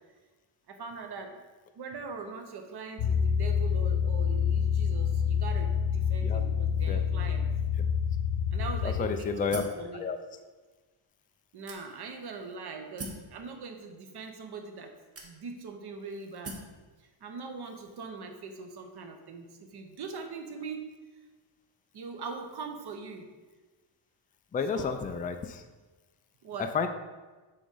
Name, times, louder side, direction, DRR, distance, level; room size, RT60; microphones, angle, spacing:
voice 1, 0.7-1.4 1.7-7.5 8.5-10.1 11.5-14.9 15.2-16.6 17.0-20.9 21.9-23.3 24.7-25.0 26.4-26.7, right 4 dB, 50° right, 5 dB, 1.0 m, -41 dB
sound 1, 3.0-9.0, left 7 dB, 80° left, 0.9 m, -27 dB
voice 2, 9.0-9.6 9.9-10.2 24.5-25.6 26.7-26.9, left 5 dB, 20° left, 7 dB, 0.3 m, -30 dB
sound 2, 9.5-9.9 10.6-10.7 11.7-12.2 13.0-13.3 14.2-14.3 15.1-15.7 16.4-16.8, right 2 dB, 30° right, 1.1 m, -41 dB
6.9 x 3.7 x 5.4 m, 1.3 s
cardioid pair, 135°, 49 cm